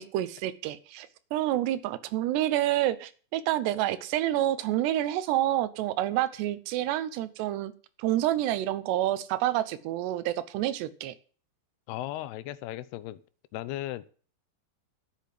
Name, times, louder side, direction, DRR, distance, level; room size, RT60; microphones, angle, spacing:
voice 1, 0.0-7.7 8.0-11.1, right 13 dB, 85° right, 14 dB, 3.0 m, -28 dB
voice 2, 11.9-13.2 13.5-14.1, left 14 dB, 80° left, 15 dB, 2.6 m, -36 dB
10.5 x 8.5 x 7.6 m, 0.41 s
omnidirectional pair, 4.8 m